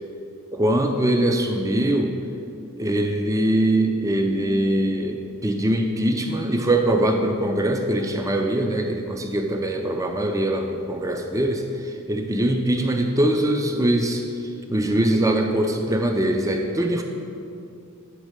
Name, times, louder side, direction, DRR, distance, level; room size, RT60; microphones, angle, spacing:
voice 1, 0.5-2.2 2.8-14.2 14.7-17.0, right 1 dB, 15° right, 4 dB, 0.4 m, -22 dB
9.2 x 3.5 x 6.5 m, 2.5 s
head